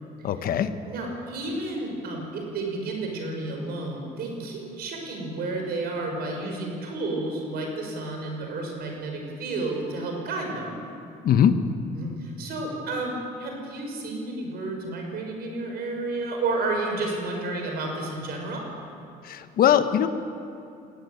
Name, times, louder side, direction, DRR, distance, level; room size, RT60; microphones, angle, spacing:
voice 1, 0.2-0.7 11.2-11.6 19.2-20.1, left 9 dB, 60° left, 10 dB, 1.2 m, -21 dB
voice 2, 0.9-10.8 11.9-13.1 13.4-18.6, right 2 dB, 70° right, 1 dB, 6.0 m, -31 dB
21.0 x 14.0 x 9.7 m, 2.6 s
cardioid pair, 110°, 17 cm